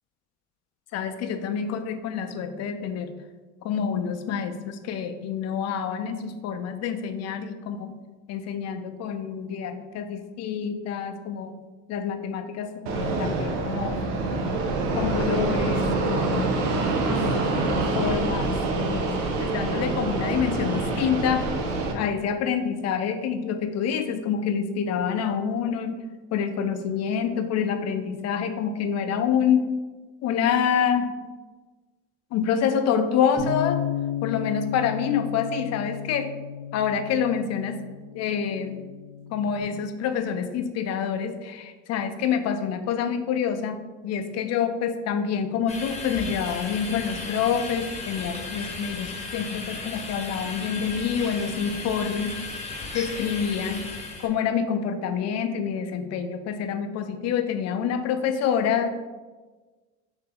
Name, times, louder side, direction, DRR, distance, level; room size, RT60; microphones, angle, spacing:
voice 1, 0.9-3.1 3.6-7.9 8.3-11.6 11.9-14.0 14.9-16.7 17.1-17.2 17.5-18.6 18.9-21.5 21.9-26.0 26.3-29.7 30.2-31.2 32.3-33.8 34.2-36.3 36.7-37.9 38.1-38.8 39.3-52.4 52.9-53.9 54.2-58.9, left 7 dB, 50° left, 8 dB, 0.5 m, -27 dB
Fixed-wing aircraft airplane, 12.9-21.9, right 3 dB, 85° right, 0.6 m, -26 dB
Bass guitar, 33.4-39.6, left 8 dB, 5° right, 1.0 m, -34 dB
sound 1, 45.7-54.3, left 3 dB, 20° left, 1.0 m, -35 dB
3.8 x 2.8 x 3.9 m, 1.3 s
supercardioid pair, 80°, 33 cm